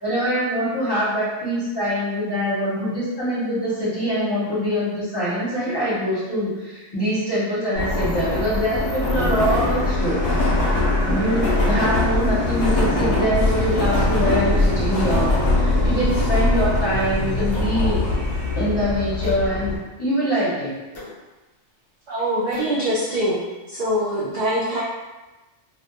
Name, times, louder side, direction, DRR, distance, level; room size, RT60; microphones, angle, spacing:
voice 1, 0.0-10.2 10.7-18.1 18.6-20.7, equal, 25° left, -10 dB, 0.7 m, -24 dB
Subway metro underground, 7.8-19.8, left 2 dB, 90° left, 1.0 m, -21 dB
sound 1, 17.5-17.8 19.2-19.5 20.9-21.1 22.5-22.8, left 2 dB, 60° left, 0.8 m, -38 dB
voice 2, 22.1-23.4 23.7-24.8, equal, 60° right, -7 dB, 0.4 m, -23 dB
2.3 x 2.1 x 2.8 m, 1.1 s
omnidirectional pair, 1.3 m